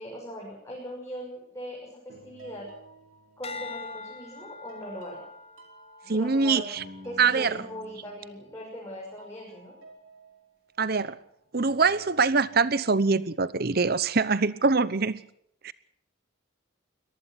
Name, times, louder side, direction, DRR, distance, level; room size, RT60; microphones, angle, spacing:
voice 1, 0.0-2.7 3.4-5.2 6.0-6.7 7.0-9.7, equal, 15° left, -3 dB, 6.2 m, -40 dB
sound 1, 2.1-4.0 4.4-8.9 9.2-11.1 11.6-12.8, right 1 dB, 75° right, 4.8 m, -51 dB
sound 2, 3.4-7.9 8.5-8.9, left 4 dB, 30° left, 1.5 m, -44 dB
voice 2, 6.1-6.8 7.2-7.6 10.8-11.2 11.5-15.2 15.6-15.7, right 4 dB, 50° right, 17 dB, 0.9 m, -24 dB
24.0 x 19.0 x 6.0 m, 0.72 s
head